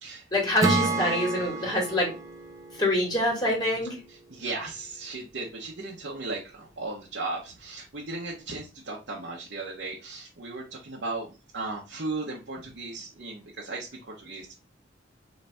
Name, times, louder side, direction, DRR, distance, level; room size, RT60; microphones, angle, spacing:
voice 1, 0.3-2.1 2.8-3.9, left 1 dB, 25° left, -2 dB, 1.9 m, -25 dB
Acoustic guitar / Strum, 0.6-4.1, right 3 dB, 20° right, 0.6 m, -30 dB
voice 2, 4.1-11.3 11.5-14.5, right 3 dB, 65° right, -2 dB, 0.9 m, -36 dB
4.0 x 3.2 x 3.3 m, 0.31 s
head